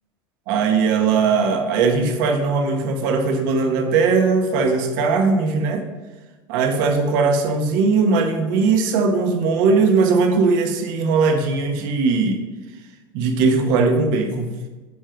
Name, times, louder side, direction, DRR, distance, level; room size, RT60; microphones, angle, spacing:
voice 1, 0.5-5.8 6.5-12.4 13.1-14.5, right 4 dB, 70° right, 4 dB, 1.3 m, -19 dB
10.0 x 4.5 x 5.1 m, 1.3 s
supercardioid pair, 110°, 12 cm